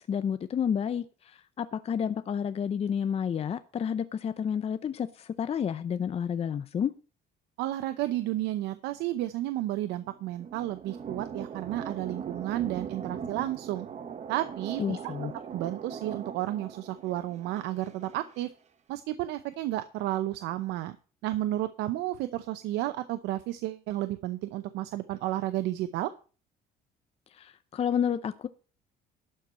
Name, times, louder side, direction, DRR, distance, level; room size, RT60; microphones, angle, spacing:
voice 1, 0.0-6.9 14.8-15.3 27.3-28.5, left 8 dB, 35° left, 0.6 m, -30 dB
voice 2, 7.6-13.9 14.3-15.1 15.5-18.5 18.9-21.0 21.2-26.1, right 14 dB, 90° right, 0.7 m, -32 dB
sound 1, 10.0-18.5, right 7 dB, 40° right, 1.2 m, -40 dB
12.0 x 4.5 x 7.6 m
cardioid pair, 110°, 17 cm